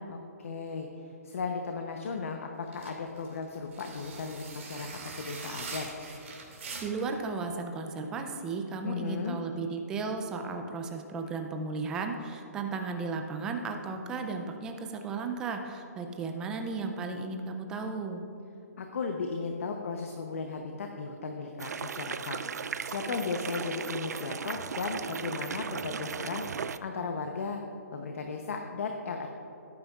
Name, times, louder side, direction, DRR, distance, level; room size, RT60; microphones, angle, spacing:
voice 1, 0.1-5.9 8.8-9.4 18.8-27.6 27.9-29.3, left 4 dB, 55° left, 4 dB, 0.8 m, -36 dB
sound 1, 2.7-7.2, right 4 dB, 50° right, 2.5 m, -43 dB
voice 2, 6.8-18.2, right 4 dB, 10° right, 4 dB, 0.4 m, -35 dB
sound 2, 21.6-26.8, right 6 dB, 80° right, 0.4 m, -36 dB
16.5 x 9.1 x 2.4 m, 3.0 s
hypercardioid pair, 170°, 9 cm